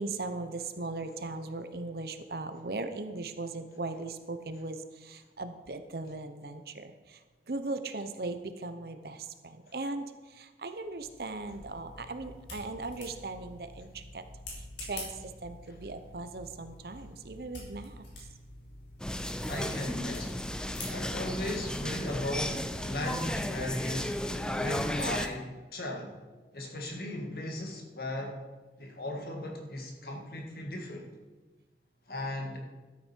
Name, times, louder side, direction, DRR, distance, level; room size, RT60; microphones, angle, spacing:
voice 1, 0.0-7.2 7.5-14.2 14.8-15.1 15.4-18.0, right 2 dB, 60° right, 9 dB, 0.8 m, -38 dB
sound 1, 10.8-23.5, left 1 dB, 80° left, 4.1 m, -47 dB
sound 2, 19.0-25.3, left 1 dB, 5° left, 0.5 m, -34 dB
voice 2, 19.5-20.4 20.9-24.2 24.6-26.2 26.5-28.4 28.8-31.1 32.1-32.6, left 1 dB, 55° left, 1 dB, 1.9 m, -37 dB
13.0 x 8.7 x 4.5 m, 1.3 s
head